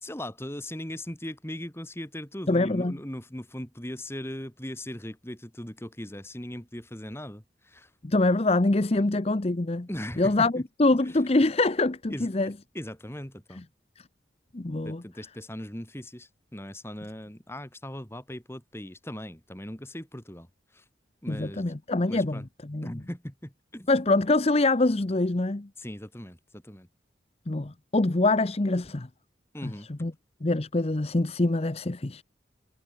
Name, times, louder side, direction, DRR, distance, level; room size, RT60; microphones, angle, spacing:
voice 1, 0.0-7.9 9.9-10.6 11.0-11.2 12.1-13.6 14.8-20.5 20.7-20.8 21.2-21.8 22.1-22.5 22.8-23.9 25.8-26.9 29.5-29.9, left 1 dB, 15° left, 3.0 m, -39 dB
voice 2, 2.5-2.9 8.0-9.9 10.2-12.5 14.5-15.0 21.3-22.9 23.9-25.7 27.5-29.1 29.6-29.7 30.0-30.1 30.4-32.2, left 2 dB, 35° left, 0.8 m, -24 dB
head